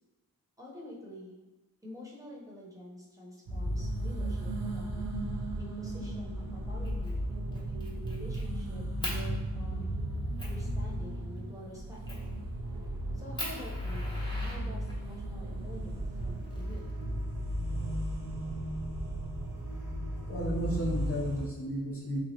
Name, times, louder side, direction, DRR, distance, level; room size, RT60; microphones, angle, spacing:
voice 1, 0.6-1.4 1.8-5.1 5.6-9.9 10.4-12.0 13.1-16.8, left 1 dB, 10° right, -5 dB, 0.9 m, -47 dB
sound 1, 3.5-21.5, right 1 dB, 90° right, 0.5 m, -35 dB
Fire, 6.8-7.1 7.5-8.4 9.0-9.2 9.8-9.9 10.4-10.6 12.1-12.3 12.8-12.9 13.4-15.1 16.2-17.2, equal, 15° left, 0.9 m, -40 dB
voice 2, 20.3-22.2, right 1 dB, 40° left, -2 dB, 0.8 m, -33 dB
3.0 x 2.4 x 2.9 m, 1.1 s
cardioid pair, 45°, 36 cm